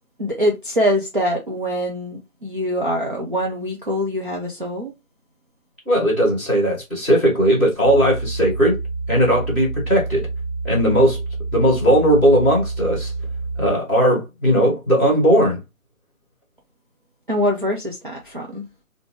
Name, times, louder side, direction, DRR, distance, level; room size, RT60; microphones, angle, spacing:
voice 1, 0.2-4.9 17.3-18.6, equal, 40° right, 0.5 m, -23 dB
voice 2, 5.8-8.8 9.1-10.3 10.6-11.2 11.5-13.1 13.6-15.6, equal, 10° right, 1.2 m, -17 dB
sound 1, 7.8-13.7, right 3 dB, 40° left, 0.8 m, -28 dB
3.5 x 2.6 x 3.0 m
figure-of-eight pair, 165°, 43 cm